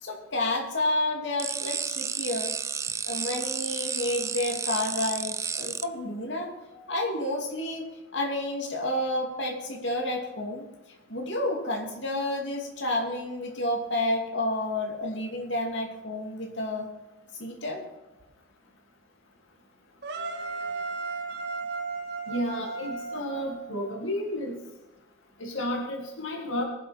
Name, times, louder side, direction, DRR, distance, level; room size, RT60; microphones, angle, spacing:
voice 1, 0.0-2.5 3.0-7.9 8.1-10.6 11.1-16.9 17.4-17.8, left 1 dB, 60° left, 0 dB, 2.6 m, -30 dB
sound 1, 1.4-5.8, right 6 dB, 15° right, 0.3 m, -32 dB
sound 2, 20.0-24.1, right 4 dB, 55° right, 1.9 m, -35 dB
voice 2, 22.3-24.5 25.4-26.6, left 1 dB, 80° left, 0 dB, 2.1 m, -32 dB
22.0 x 7.7 x 4.4 m, 1.1 s
head